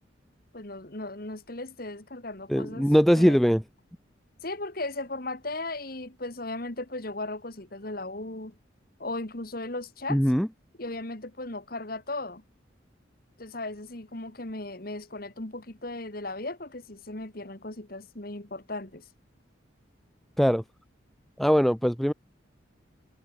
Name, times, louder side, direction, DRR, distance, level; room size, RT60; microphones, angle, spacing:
voice 1, 0.5-2.9 3.1-3.4 4.4-8.6 9.0-10.2 10.8-12.4 13.4-19.0, left 2 dB, 50° left, 2.1 m, -36 dB
voice 2, 2.5-3.6 10.1-10.5 20.4-20.6 21.4-22.1, equal, ahead, 0.7 m, -21 dB
head